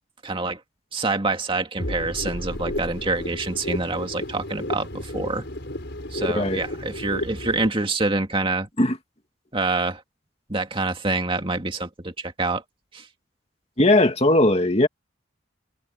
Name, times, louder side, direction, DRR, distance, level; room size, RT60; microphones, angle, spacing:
voice 1, 0.2-0.6 0.9-5.4 6.1-8.7 9.5-10.0 10.5-12.6 12.9-13.0, right 3 dB, 25° right, 2.2 m, -26 dB
sound 1, 1.8-7.7, left 1 dB, 60° left, 6.5 m, -32 dB
voice 2, 6.3-6.6 8.8-9.0 13.8-14.9, left 1 dB, 30° left, 2.6 m, -18 dB
head